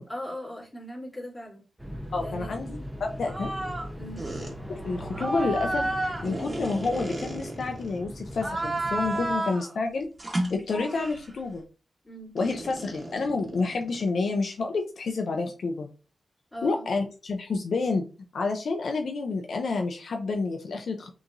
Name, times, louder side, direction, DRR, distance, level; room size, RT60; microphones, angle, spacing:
voice 1, 0.1-1.6 2.2-2.6 4.0-4.2 12.0-12.4 16.5-16.9, left 1 dB, 15° left, -5 dB, 2.3 m, -39 dB
sound 1, 1.8-9.4, equal, 5° right, 0.8 m, -39 dB
voice 2, 2.1-3.5 4.7-10.1 10.5-11.6 12.3-15.9 16.6-18.0 18.3-21.1, left 3 dB, 75° left, 4 dB, 0.6 m, -29 dB
sound 2, 3.3-3.9 4.2-4.5 5.1-7.9 8.3-9.7 10.2-11.3 12.4-14.2, right 2 dB, 30° right, 1.3 m, -32 dB
6.1 x 3.0 x 2.6 m, 0.34 s
wide cardioid pair, 90°, 0 cm